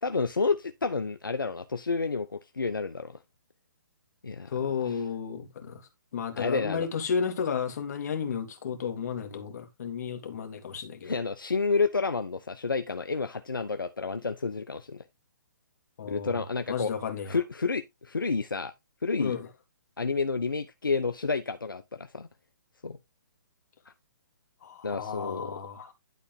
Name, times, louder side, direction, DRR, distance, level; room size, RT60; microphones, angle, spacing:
voice 1, 0.0-3.1 4.2-4.6 4.8-5.0 6.3-6.9 11.0-15.0 16.0-16.9 17.3-18.7 19.0-19.3 20.0-22.3 22.8-23.0 24.8-25.5, left 4 dB, 90° left, 1.1 m, -30 dB
voice 2, 4.5-5.8 6.1-11.1 16.0-16.4 16.7-17.4 19.2-19.5 24.6-25.9, left 6 dB, 55° left, 2.7 m, -33 dB
12.0 x 4.2 x 4.0 m
hypercardioid pair, 140°, 11 cm